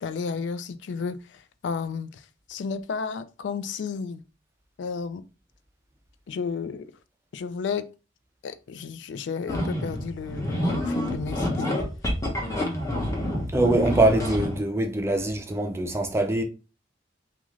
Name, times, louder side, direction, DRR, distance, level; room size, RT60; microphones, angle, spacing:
voice 1, 0.0-2.2 2.5-4.2 4.8-5.2 6.3-6.9 7.3-7.8 8.4-11.7, left 5 dB, 70° left, 0.3 m, -32 dB
sound 1, 9.5-14.6, left 1 dB, 20° left, 0.7 m, -28 dB
voice 2, 13.5-16.4, right 2 dB, 15° right, 0.4 m, -23 dB
2.4 x 2.3 x 3.1 m
head